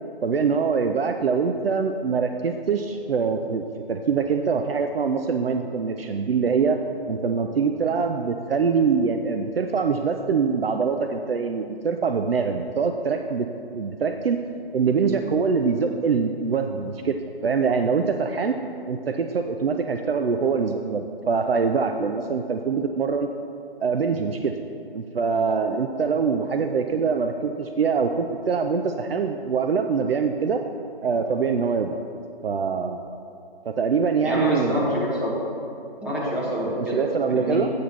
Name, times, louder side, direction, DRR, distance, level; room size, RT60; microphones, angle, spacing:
voice 1, 0.2-6.8 7.1-13.5 13.7-14.4 14.7-18.6 18.9-23.3 23.8-24.5 24.9-30.6 31.0-32.0 32.4-33.1 33.7-34.9 36.8-37.7, right 5 dB, 75° right, 6 dB, 0.6 m, -24 dB
voice 2, 34.2-35.4 36.0-37.6, equal, 5° right, -8 dB, 1.1 m, -26 dB
8.6 x 5.3 x 5.9 m, 2.6 s
figure-of-eight pair, 150°, 29 cm